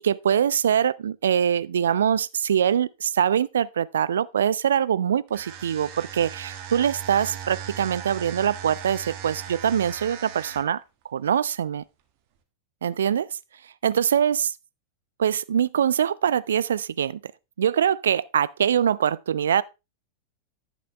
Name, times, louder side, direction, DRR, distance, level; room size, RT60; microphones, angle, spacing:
voice 1, 0.0-10.8 11.1-11.8 12.8-13.3 13.8-14.5 15.2-17.2 17.6-19.6, right 8 dB, 65° right, 0.4 m, -23 dB
sound 1, 5.3-10.8, right 9 dB, 45° right, 1.5 m, -38 dB
11.0 x 8.3 x 3.2 m
figure-of-eight pair, 90°, 0 cm